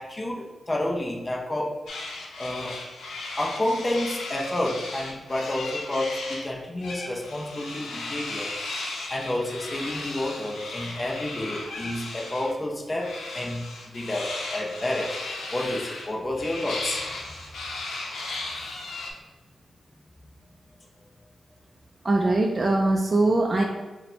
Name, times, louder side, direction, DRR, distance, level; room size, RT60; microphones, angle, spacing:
voice 1, 0.0-1.8 2.4-2.8 3.4-8.5 9.1-15.2 15.5-17.1, left 1 dB, 25° left, -1 dB, 0.5 m, -30 dB
sound 1, 1.9-6.5 6.8-12.5 13.0-19.1, left 2 dB, 90° left, 0.6 m, -36 dB
voice 2, 22.0-23.6, right 2 dB, 35° right, 0 dB, 0.3 m, -21 dB
4.0 x 2.1 x 4.2 m, 1.2 s
cardioid pair, 100°, 0 cm